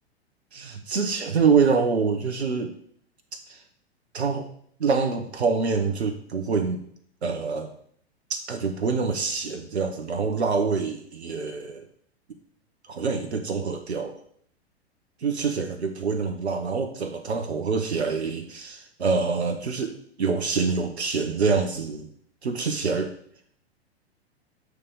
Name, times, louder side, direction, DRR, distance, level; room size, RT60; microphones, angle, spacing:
voice 1, 0.5-2.7 3.5-3.6 4.1-4.5 4.8-6.8 7.2-7.7 8.3-11.9 12.9-14.2 15.2-22.1 22.4-23.1, right 5 dB, 80° right, 6 dB, 1.2 m, -26 dB
8.2 x 3.5 x 5.5 m, 0.62 s
figure-of-eight pair, 105°, 33 cm